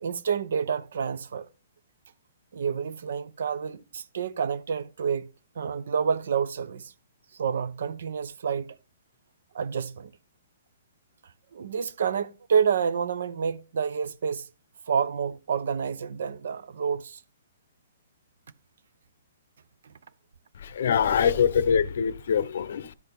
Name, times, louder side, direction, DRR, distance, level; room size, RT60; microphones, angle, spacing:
voice 1, 0.0-1.5 2.5-5.3 5.6-6.9 7.4-8.8 9.5-10.1 11.5-14.5 14.9-17.2 21.0-21.1, right 6 dB, 65° right, 0.6 m, -28 dB
voice 2, 20.6-22.9, left 7 dB, 65° left, 0.6 m, -24 dB
12.0 x 4.1 x 3.4 m
hypercardioid pair, 125°, 0 cm